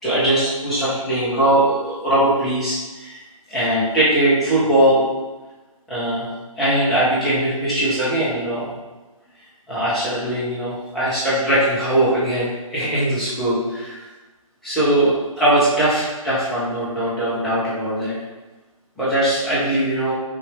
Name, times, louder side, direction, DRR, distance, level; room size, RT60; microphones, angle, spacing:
voice 1, 0.0-3.2 3.5-5.0 5.9-6.3 6.6-8.8 9.7-14.0 14.6-18.2 19.0-20.1, right 1 dB, ahead, -12 dB, 0.4 m, -20 dB
6.1 x 2.2 x 3.1 m, 1.2 s
hypercardioid pair, 160°, 18 cm